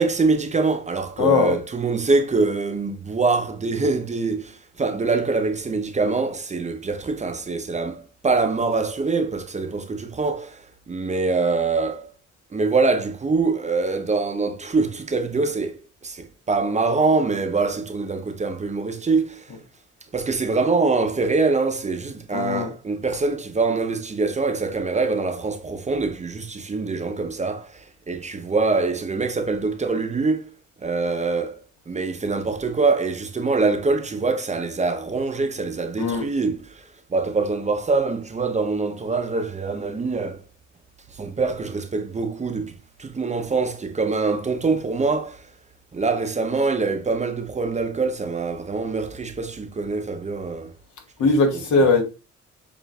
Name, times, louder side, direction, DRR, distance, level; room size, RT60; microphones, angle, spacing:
voice 1, 0.0-10.6 10.9-12.1 12.5-19.5 20.1-30.5 30.8-31.6 31.9-40.4 41.2-45.4 45.9-50.7 51.8-51.9, right 3 dB, 25° right, 0.6 m, -24 dB
voice 2, 1.2-1.6 22.3-22.7 36.0-36.3 51.2-52.0, left 3 dB, 80° left, 1.2 m, -19 dB
6.9 x 2.5 x 2.2 m
cardioid pair, 90°, 30 cm